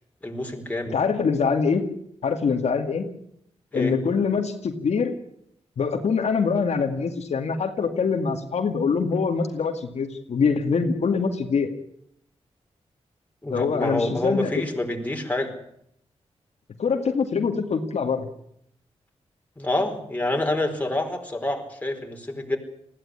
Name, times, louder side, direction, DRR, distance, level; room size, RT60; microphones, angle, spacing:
voice 1, 0.2-0.9 3.7-4.0 13.4-15.5 19.6-22.6, left 1 dB, 15° left, 2 dB, 4.6 m, -27 dB
voice 2, 0.9-1.8 2.2-3.1 3.7-5.1 5.8-11.7 13.5-14.5 16.8-18.3, left 5 dB, 75° left, 4 dB, 2.2 m, -24 dB
20.5 x 15.5 x 9.8 m, 0.71 s
cardioid pair, 85°, 11 cm